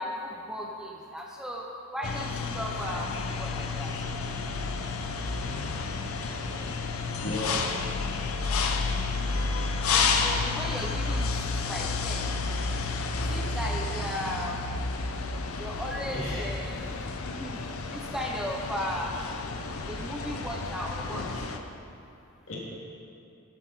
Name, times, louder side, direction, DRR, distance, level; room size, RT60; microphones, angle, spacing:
voice 1, 0.0-1.7 1.9-3.1 3.4-3.9 9.9-11.3 11.7-12.3 13.3-14.6 15.6-16.8 17.3-17.6 17.9-19.1 19.7-21.3, equal, 5° right, -1 dB, 0.6 m, -35 dB
sound 1, 2.0-21.6, left 4 dB, 85° left, 0.7 m, -31 dB
voice 2, 7.2-7.9 16.1-16.5 22.5-22.6, left 1 dB, 65° left, -5 dB, 2.8 m, -34 dB
11.5 x 9.5 x 4.4 m, 2.6 s
head